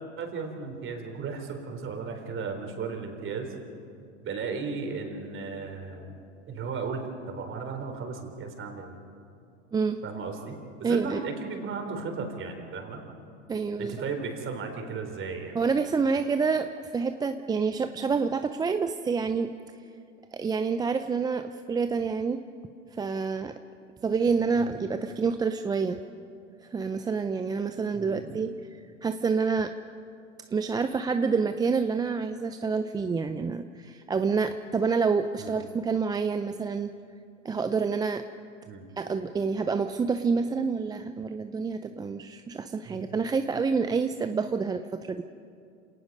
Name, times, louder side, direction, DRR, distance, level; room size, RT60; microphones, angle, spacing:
voice 1, 0.2-3.5 4.2-6.2 6.5-9.0 10.0-13.0 13.8-15.6 24.5-24.8 27.9-28.4 35.4-35.6 38.7-38.8 42.8-43.2, right 4 dB, 35° right, 4 dB, 3.9 m, -35 dB
voice 2, 9.7-10.0 10.8-11.2 13.5-13.9 15.5-19.5 20.3-22.4 22.9-23.5 24.0-26.0 26.7-29.7 30.5-36.9 37.4-38.2 39.0-45.2, right 5 dB, 10° right, 8 dB, 0.4 m, -28 dB
27.5 x 18.5 x 5.4 m, 2.5 s
hypercardioid pair, 100°, 37 cm